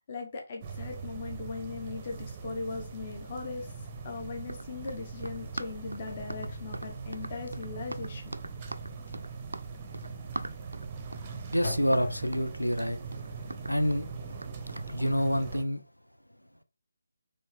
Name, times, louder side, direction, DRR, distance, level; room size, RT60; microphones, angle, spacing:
voice 1, 0.1-3.7 4.0-8.3, left 4 dB, 30° left, 1.0 m, -39 dB
sound 1, 0.6-15.6, right 5 dB, 20° right, 0.7 m, -41 dB
sound 2, 4.2-4.4 4.8-5.1 5.4-12.7, left 3 dB, 50° left, 1.4 m, -44 dB
Run, 4.4-14.9, right 2 dB, 70° right, 0.4 m, -42 dB
voice 2, 11.5-13.0 13.7-14.1 14.9-15.8, equal, 85° left, 0.6 m, -27 dB
4.5 x 3.2 x 3.5 m
figure-of-eight pair, 150°, 0 cm